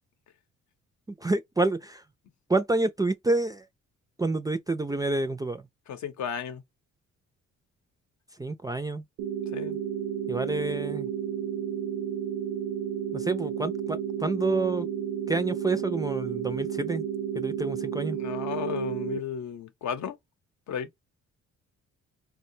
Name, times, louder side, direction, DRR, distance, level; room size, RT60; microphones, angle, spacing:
voice 1, 1.2-2.0 2.5-3.6 4.2-5.6 8.4-9.0 10.3-11.1 13.1-14.9 15.3-17.0 17.3-18.2, right 2 dB, 15° right, 0.3 m, -28 dB
voice 2, 5.9-6.6 9.5-9.8 18.1-20.2 20.7-20.9, left 8 dB, 65° left, 0.7 m, -34 dB
sound 1, 9.2-19.2, right 9 dB, 85° right, 0.6 m, -32 dB
3.7 x 2.2 x 2.6 m
cardioid pair, 90°, 30 cm